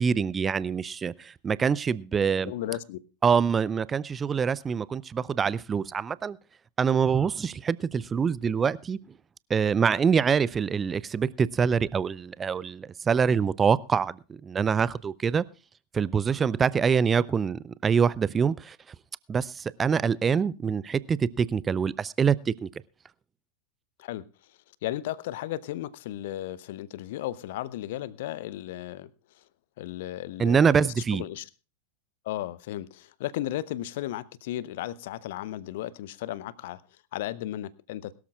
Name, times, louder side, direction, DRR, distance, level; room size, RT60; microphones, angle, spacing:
voice 1, 0.0-2.5 3.2-6.4 6.8-9.0 9.5-14.2 14.4-15.4 15.9-18.8 19.3-22.7 30.4-31.2, right 6 dB, 20° right, 0.5 m, -25 dB
voice 2, 2.4-3.0 24.0-24.2 24.8-29.1 29.8-31.5 32.2-36.8 37.1-38.1, left 14 dB, 55° left, 0.8 m, -35 dB
21.5 x 13.0 x 2.4 m
figure-of-eight pair, 90°, 0 cm